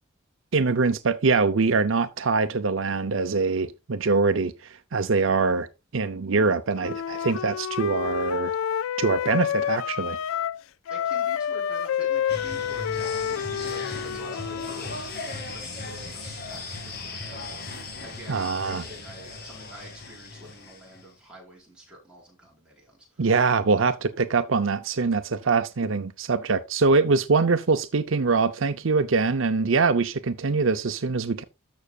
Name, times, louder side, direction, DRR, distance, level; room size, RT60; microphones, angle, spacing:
voice 1, 0.5-5.7 5.9-8.5 9.0-10.2 18.3-18.8 23.2-31.4, right 4 dB, 75° right, 0.7 m, -23 dB
Wind instrument woodwind instrument, 6.8-10.6 10.9-14.9, left 9 dB, 85° left, 0.3 m, -29 dB
voice 2, 10.9-23.3, right 1 dB, 5° right, 5.0 m, -47 dB
sound 1, 12.3-21.0, left 3 dB, 50° left, 2.2 m, -37 dB
13.5 x 6.1 x 2.4 m
head